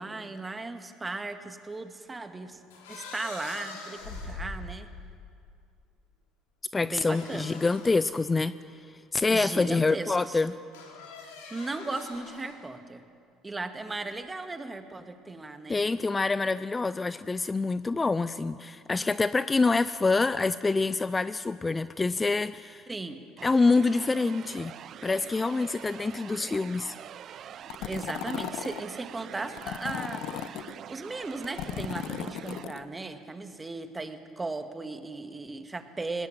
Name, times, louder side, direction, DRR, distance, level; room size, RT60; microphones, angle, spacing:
voice 1, 0.0-2.6 2.9-4.9 6.8-7.6 9.3-10.2 11.5-13.0 13.4-15.8 22.9-23.2 27.8-36.3, right 3 dB, 20° right, 8 dB, 1.9 m, -37 dB
sound 1, 2.7-5.5 7.1-8.0 8.7-8.8 10.7-12.6, left 3 dB, 85° left, 3.9 m, -43 dB
voice 2, 6.7-8.5 9.1-10.5 15.7-22.9 23.4-24.7 25.0-26.9, left 3 dB, 20° left, 15 dB, 0.6 m, -26 dB
sound 2, 23.4-32.7, right 9 dB, 55° right, 0.6 m, -45 dB
sound 3, 27.7-28.8 29.6-30.7 31.3-32.8, left 11 dB, 65° left, 0.9 m, -36 dB
20.0 x 17.5 x 9.0 m, 2.3 s
hypercardioid pair, 70°, 0 cm